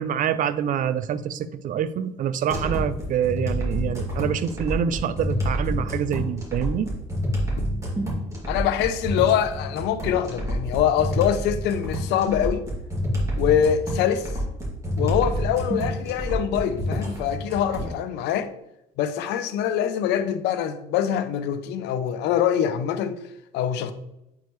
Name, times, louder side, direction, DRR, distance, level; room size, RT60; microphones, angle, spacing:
voice 1, 0.0-6.9, right 8 dB, 50° right, 0.5 m, -26 dB
sound 1, 2.5-17.9, equal, 20° right, 2.4 m, -28 dB
voice 2, 8.5-12.6 13.4-14.3 15.0-18.5 19.0-23.2 23.5-23.9, left 9 dB, 85° left, 0.6 m, -24 dB
8.2 x 4.7 x 3.1 m
cardioid pair, 110°, 17 cm